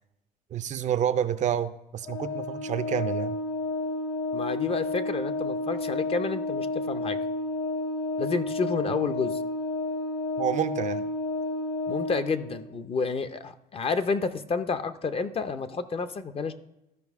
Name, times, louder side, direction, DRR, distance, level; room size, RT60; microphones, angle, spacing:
voice 1, 0.5-3.4 8.9-9.0 10.4-11.1, right 9 dB, 45° right, 12 dB, 0.5 m, -29 dB
Organ, 2.0-12.7, left 2 dB, 85° left, 1.6 m, -31 dB
voice 2, 4.3-7.2 8.2-9.4 11.9-16.5, left 4 dB, 35° left, 10 dB, 0.6 m, -30 dB
13.5 x 4.9 x 3.5 m, 0.87 s
cardioid pair, 110°, 17 cm